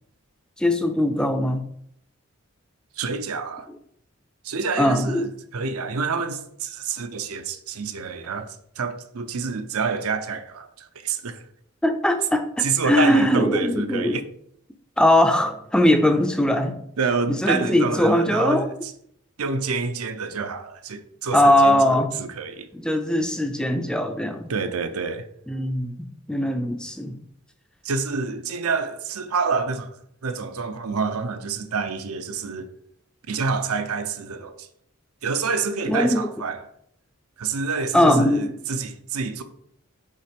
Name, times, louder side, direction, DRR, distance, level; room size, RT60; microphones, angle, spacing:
voice 1, 0.6-1.6 4.8-5.3 11.8-14.2 15.0-16.8 17.4-18.7 21.3-22.1 22.7-24.4 25.5-27.2 35.9-36.2 37.9-38.5, left 1 dB, 5° left, 0.3 m, -20 dB
voice 2, 3.0-3.7 4.4-11.4 12.6-14.2 17.0-18.9 19.4-22.7 24.5-25.2 27.8-29.9 30.2-32.7 33.3-34.7 35.2-36.6 37.4-39.4, right 5 dB, 90° right, 0.6 m, -28 dB
5.6 x 3.3 x 5.1 m
head